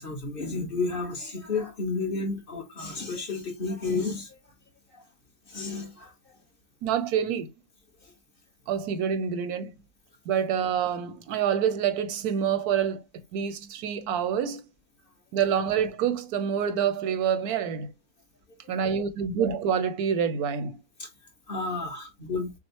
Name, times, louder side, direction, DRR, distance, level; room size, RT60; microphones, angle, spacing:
voice 1, 0.0-4.4 5.5-6.1 21.0-21.1 21.5-22.5, left 3 dB, 40° left, 1.1 m, -31 dB
voice 2, 6.8-7.5 8.7-9.7 10.3-14.6 15.3-17.9 18.7-20.8, right 8 dB, 85° right, 1.2 m, -27 dB
6.1 x 2.0 x 2.8 m
omnidirectional pair, 1.6 m